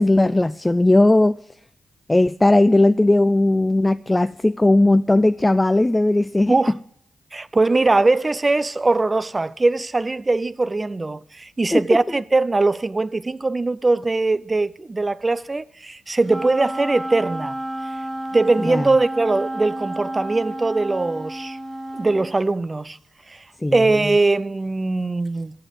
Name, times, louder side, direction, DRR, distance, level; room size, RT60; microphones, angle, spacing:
voice 1, 0.0-1.4 2.1-6.5 11.7-11.8 18.6-18.9 23.6-23.8, left 2 dB, 20° left, 0.4 m, -17 dB
voice 2, 7.3-17.6 18.3-21.6 21.9-23.0 23.3-23.4 23.7-25.5, right 3 dB, 30° right, 0.6 m, -21 dB
Wind instrument woodwind instrument, 16.2-22.4, right 1 dB, 15° right, 2.0 m, -31 dB
9.9 x 7.7 x 8.8 m
supercardioid pair, 50°, 0 cm